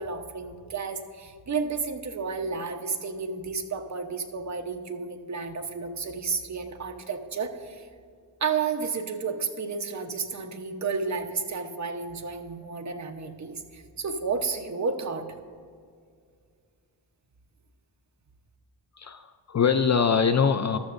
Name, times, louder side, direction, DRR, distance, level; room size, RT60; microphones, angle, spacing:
voice 1, 0.0-7.9 8.4-15.3, right 5 dB, 40° right, 4 dB, 0.9 m, -32 dB
voice 2, 19.0-20.8, left 6 dB, 45° left, 9 dB, 0.4 m, -23 dB
14.5 x 12.5 x 2.5 m, 2.1 s
wide cardioid pair, 135°, 42 cm